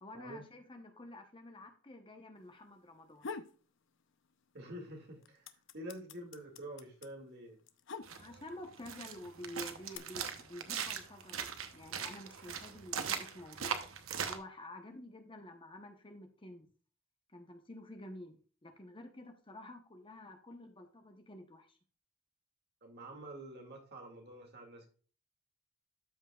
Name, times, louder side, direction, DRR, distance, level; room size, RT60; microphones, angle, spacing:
voice 1, 0.0-3.3 8.2-13.8 14.2-16.7 17.3-21.8, left 1 dB, 25° left, 5 dB, 1.0 m, -50 dB
sound 1, 2.9-3.6 4.0-4.7 5.0-8.6 9.3-10.0, left 5 dB, 65° left, 0.7 m, -46 dB
voice 2, 4.5-5.5 5.7-7.6 22.8-24.9, right 1 dB, 55° right, 2 dB, 2.3 m, -47 dB
sound 2, 8.0-14.4, right 7 dB, 90° right, 1.0 m, -40 dB
13.0 x 5.4 x 2.4 m, 0.39 s
head